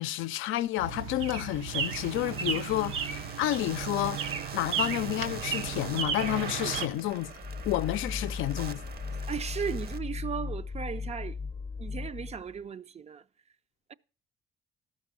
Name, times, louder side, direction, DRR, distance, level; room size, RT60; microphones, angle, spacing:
voice 1, 0.0-4.3 4.5-7.3 7.6-8.8, left 14 dB, 85° left, 0.4 m, -30 dB
sound 1, 0.8-6.9, right 6 dB, 85° right, 1.0 m, -34 dB
sound 2, 1.7-10.0, right 6 dB, 50° right, 0.8 m, -43 dB
sound 3, 7.1-12.6, left 4 dB, 15° left, 0.5 m, -37 dB
voice 2, 9.2-11.4 11.8-13.2 13.9-14.0, right 7 dB, 35° right, 0.4 m, -36 dB
12.5 x 5.8 x 6.1 m
cardioid pair, 90°, 20 cm